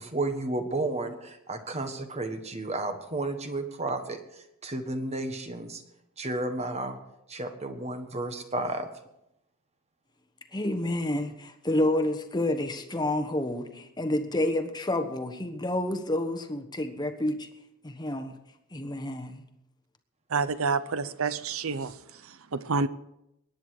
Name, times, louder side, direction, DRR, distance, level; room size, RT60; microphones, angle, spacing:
voice 1, 0.0-4.2 4.6-5.8 6.2-7.0 7.3-8.9, right 2 dB, 30° right, 7 dB, 1.5 m, -32 dB
voice 2, 10.5-17.5 17.8-18.4 18.7-19.4, left 1 dB, 20° left, 8 dB, 1.2 m, -29 dB
voice 3, 20.3-21.9 22.2-22.9, right 4 dB, 70° right, 15 dB, 0.7 m, -28 dB
22.0 x 10.0 x 4.9 m, 0.84 s
head